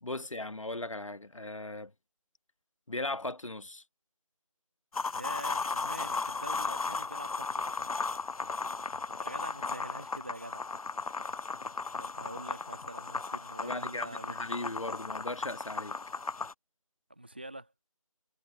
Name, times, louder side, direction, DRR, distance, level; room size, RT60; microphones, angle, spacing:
voice 1, 0.0-1.9 2.9-3.8 12.2-12.3 13.6-16.0, left 2 dB, 60° left, 1.2 m, -38 dB
sound 1, 4.9-16.5, left 4 dB, 80° left, 0.5 m, -36 dB
voice 2, 5.1-7.9 9.2-10.6 12.0-14.4 17.1-17.7, right 1 dB, 15° right, 1.6 m, -45 dB
figure-of-eight pair, 175°, 18 cm